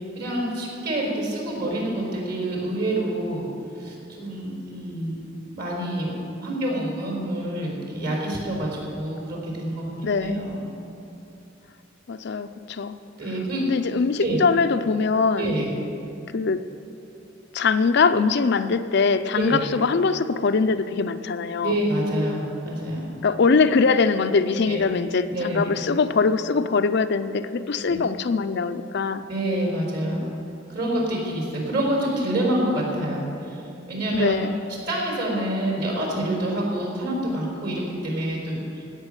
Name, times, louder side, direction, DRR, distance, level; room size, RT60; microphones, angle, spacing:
voice 1, 0.1-3.5 3.8-6.1 6.4-10.6 13.2-13.7 14.2-14.4 15.4-15.7 19.3-19.6 21.6-23.1 24.7-24.9 25.3-25.8 27.9-28.0 29.3-30.3 30.7-33.6 33.9-34.4 34.9-38.8, right 1 dB, 55° right, -2 dB, 4.2 m, -27 dB
voice 2, 10.0-10.4 12.1-13.0 13.6-15.6 16.3-16.6 17.5-21.8 23.2-29.2 34.1-34.6, left 4 dB, 60° left, 10 dB, 0.5 m, -22 dB
16.5 x 6.5 x 9.0 m, 2.7 s
head